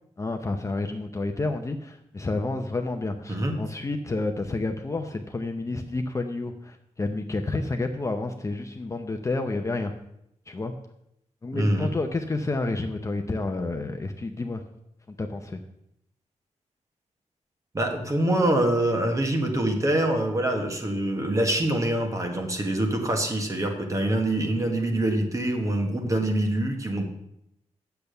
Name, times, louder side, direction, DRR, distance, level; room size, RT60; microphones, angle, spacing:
voice 1, 0.2-9.9 10.5-10.7 11.4-14.6 15.2-15.6, left 2 dB, 25° left, 5 dB, 0.7 m, -30 dB
voice 2, 11.5-11.9 17.7-27.0, right 1 dB, 25° right, 3 dB, 1.4 m, -25 dB
8.5 x 6.9 x 6.8 m, 0.79 s
wide cardioid pair, 155°, 12 cm